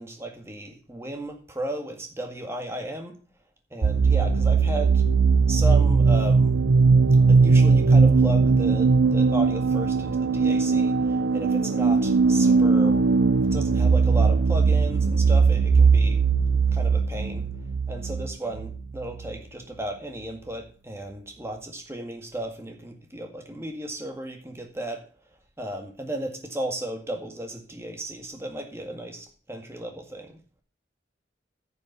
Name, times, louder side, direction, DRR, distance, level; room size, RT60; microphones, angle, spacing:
voice 1, 0.0-3.2 3.7-5.0 5.5-6.5 7.3-13.0 13.4-16.2 16.7-17.5 17.9-25.1 25.6-30.4, right 1 dB, 15° right, 3 dB, 1.9 m, -35 dB
sound 1, 3.8-19.4, right 4 dB, 80° right, 0.7 m, -19 dB
10.5 x 6.8 x 5.6 m, 0.38 s
head